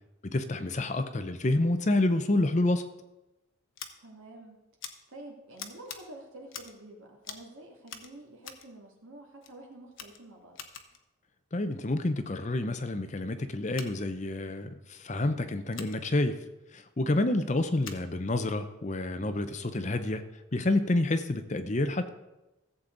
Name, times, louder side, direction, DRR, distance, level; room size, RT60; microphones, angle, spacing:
voice 1, 0.3-2.9 11.5-16.4 16.7-20.2 20.5-22.1, left 2 dB, 35° left, 9 dB, 0.6 m, -28 dB
Scissors, 3.7-3.9 4.8-4.9 5.6-6.0 6.5-6.8 7.2-7.5 7.8-8.7 9.4-9.5 9.9-11.0 13.7-13.9 15.7-16.0 17.8-18.0, left 7 dB, 70° left, 1.0 m, -44 dB
voice 2, 4.0-4.6 5.1-10.6, right 1 dB, 80° right, 0 dB, 2.3 m, -48 dB
15.0 x 7.6 x 3.9 m, 1.0 s
head